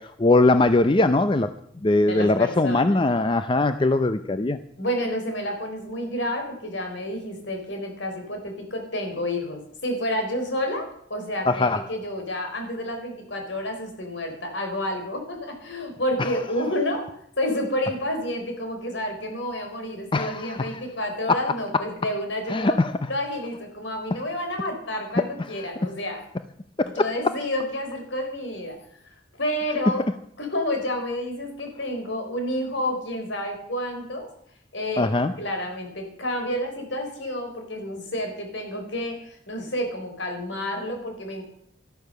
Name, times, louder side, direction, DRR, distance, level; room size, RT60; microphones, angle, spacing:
voice 1, 0.0-1.5 1.8-4.6 11.5-11.8 16.2-16.3 20.1-20.7 22.5-23.1 26.8-26.9 35.0-35.3, left 2 dB, 25° left, 11 dB, 0.5 m, -21 dB
voice 2, 2.0-3.0 4.8-17.1 17.4-22.8 23.1-26.2 26.8-28.8 29.3-30.0 30.4-34.3 34.7-35.1 35.4-41.4, left 1 dB, 70° left, 4 dB, 4.1 m, -30 dB
12.5 x 12.0 x 6.7 m, 0.68 s
head